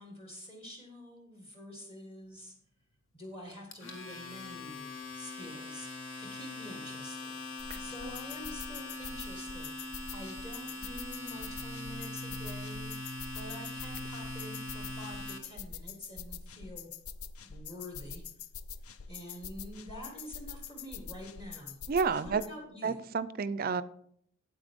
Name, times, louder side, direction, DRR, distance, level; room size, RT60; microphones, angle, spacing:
voice 1, 0.0-2.5 3.1-7.4 7.8-16.9 17.4-18.2 18.8-21.8 22.1-23.0, left 1 dB, 25° left, 1 dB, 1.6 m, -47 dB
Domestic sounds home sounds, 3.5-15.4, left 2 dB, 60° left, 1.3 m, -42 dB
sound 1, 7.6-22.5, left 6 dB, 80° left, 0.5 m, -45 dB
voice 2, 7.7-8.1 21.9-22.4 22.8-23.8, right 5 dB, 40° right, 15 dB, 0.4 m, -31 dB
8.9 x 8.1 x 3.6 m, 0.66 s
head